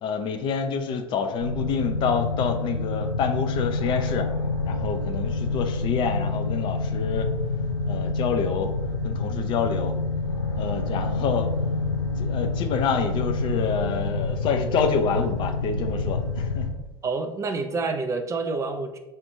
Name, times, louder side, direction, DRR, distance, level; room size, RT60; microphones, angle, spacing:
voice 1, 0.0-4.3 4.7-7.3 7.9-8.7 9.0-9.9 10.6-11.5 12.2-16.7, left 6 dB, 35° left, 6 dB, 0.5 m, -27 dB
sound 1, 1.4-16.7, left 3 dB, 90° left, 0.5 m, -27 dB
voice 2, 17.0-19.0, right 3 dB, 20° right, 6 dB, 0.5 m, -28 dB
6.3 x 2.5 x 2.7 m, 1.0 s
figure-of-eight pair, 75°, 14 cm